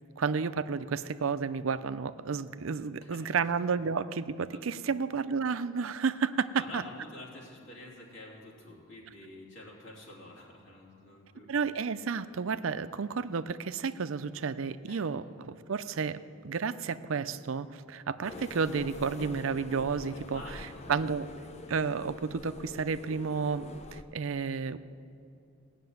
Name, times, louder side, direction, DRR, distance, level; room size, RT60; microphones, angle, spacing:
voice 1, 0.2-6.8 11.5-20.4 20.9-21.3 21.7-24.8, right 5 dB, 85° right, 13 dB, 0.5 m, -31 dB
voice 2, 6.5-11.5 14.9-15.0 20.1-21.0, left 1 dB, 65° left, -2 dB, 3.2 m, -48 dB
sound 1, 18.2-24.0, left 2 dB, 35° left, 0.6 m, -46 dB
17.5 x 6.6 x 9.3 m, 2.6 s
head